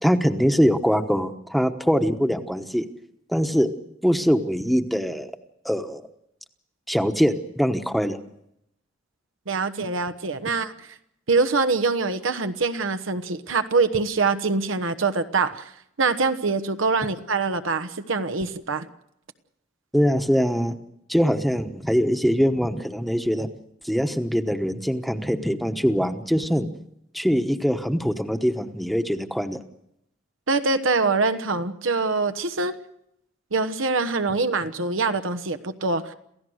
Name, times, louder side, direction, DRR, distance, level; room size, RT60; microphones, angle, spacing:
voice 1, 0.0-2.8 3.3-3.7 4.0-5.3 5.6-6.0 6.9-8.2 19.9-20.7 21.1-23.5 23.8-26.7 27.1-29.6, equal, ahead, 7 dB, 1.0 m, -22 dB
voice 2, 9.5-10.9 11.3-15.7 16.0-18.9 30.5-32.8 33.5-36.1, right 4 dB, 85° right, 10 dB, 1.2 m, -24 dB
28.0 x 15.5 x 6.4 m, 0.77 s
head